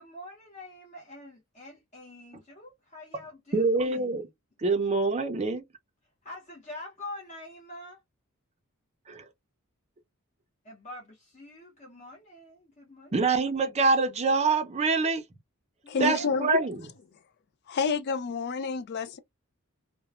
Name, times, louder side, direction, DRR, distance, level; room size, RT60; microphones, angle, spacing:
voice 1, 0.0-4.3 4.8-4.9 6.2-8.0 10.6-13.3 15.8-16.3, left 1 dB, 35° left, 0.7 m, -45 dB
voice 2, 3.5-4.2 4.6-5.6 9.1-9.3 13.1-15.2 16.0-16.8, right 3 dB, 30° right, 0.5 m, -25 dB
voice 3, 15.9-16.6 17.7-19.2, left 5 dB, 50° left, 0.3 m, -29 dB
2.9 x 2.1 x 2.3 m
head